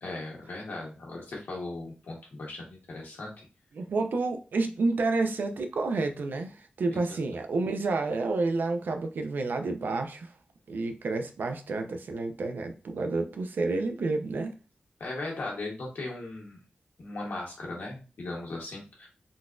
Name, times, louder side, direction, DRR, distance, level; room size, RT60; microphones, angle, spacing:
voice 1, 0.0-3.4 15.0-16.6 17.0-19.1, left 2 dB, 85° left, -2 dB, 1.2 m, -38 dB
voice 2, 3.7-10.3 10.7-14.5, right 3 dB, 80° right, 6 dB, 0.5 m, -29 dB
3.8 x 2.3 x 2.5 m, 0.34 s
wide cardioid pair, 150°, 3 cm